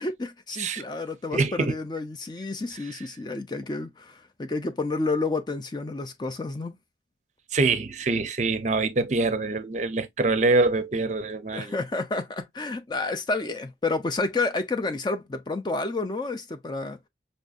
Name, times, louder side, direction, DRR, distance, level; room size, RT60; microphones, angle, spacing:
voice 1, 0.0-6.7 11.5-17.0, left 3 dB, 25° left, 0.4 m, -30 dB
voice 2, 1.3-1.7 7.5-11.8, right 3 dB, 40° right, 0.5 m, -24 dB
5.2 x 2.6 x 2.4 m
head